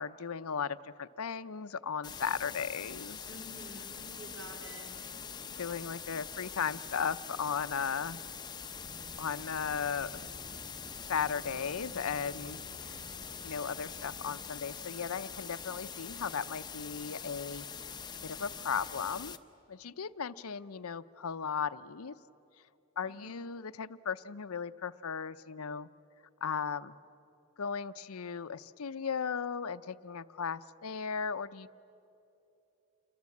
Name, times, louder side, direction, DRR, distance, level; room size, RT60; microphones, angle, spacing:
voice 1, 0.0-3.3 5.6-8.2 9.2-10.3 11.1-13.0 13.4-18.0 18.2-19.4 19.7-22.1 23.0-25.9 26.4-26.9 27.6-31.8, left 6 dB, 85° left, 14 dB, 0.6 m, -36 dB
sound 1, 2.0-19.4, left 6 dB, 20° left, 0.7 m, -44 dB
voice 2, 3.3-5.1 23.0-23.3, equal, 65° right, 3 dB, 4.2 m, -50 dB
sound 2, 8.7-14.3, equal, 35° right, 2.7 m, -53 dB
28.0 x 23.0 x 8.5 m, 2.9 s
head